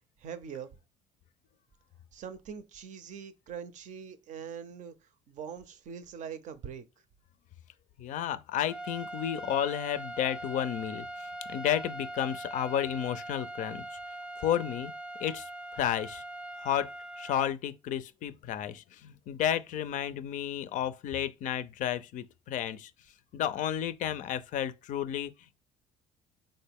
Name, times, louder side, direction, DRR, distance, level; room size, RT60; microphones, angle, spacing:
voice 1, 0.2-0.7 2.1-4.9 5.3-6.8, right 7 dB, 55° right, 0.5 m, -42 dB
voice 2, 8.0-11.1 11.5-13.9 14.4-14.9 15.2-16.2 16.6-16.9 17.2-22.9 23.3-25.3, left 10 dB, 60° left, 0.4 m, -32 dB
sound 1, 8.6-17.5, right 1 dB, 5° right, 0.5 m, -41 dB
3.7 x 2.1 x 3.5 m
supercardioid pair, 75°, 15 cm